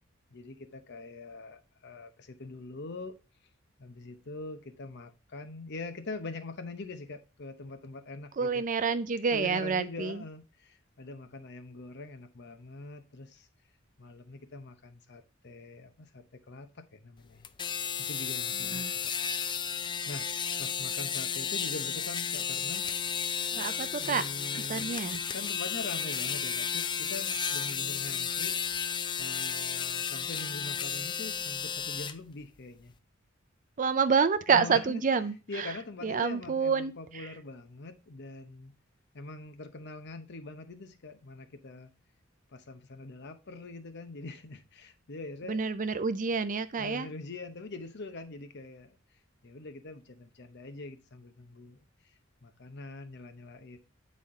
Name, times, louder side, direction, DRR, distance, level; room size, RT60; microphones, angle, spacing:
voice 1, 0.3-3.2 3.8-8.6 9.3-13.5 14.0-17.5 18.0-19.1 19.8-20.3 20.6-22.9 23.9-24.9 25.3-28.9 29.2-32.9 34.5-35.0 35.5-38.7 39.1-41.9 42.5-45.6 46.8-49.0 49.4-51.8 52.4-53.8, left 3 dB, 55° left, 0.8 m, -43 dB
voice 2, 8.4-10.2 18.6-18.9 23.5-24.2 24.5-25.2 33.8-35.7 36.0-37.3 45.5-47.1, right 5 dB, 40° right, 0.5 m, -28 dB
sound 1, 17.4-32.1, left 7 dB, 25° left, 0.3 m, -33 dB
8.9 x 4.2 x 3.7 m
head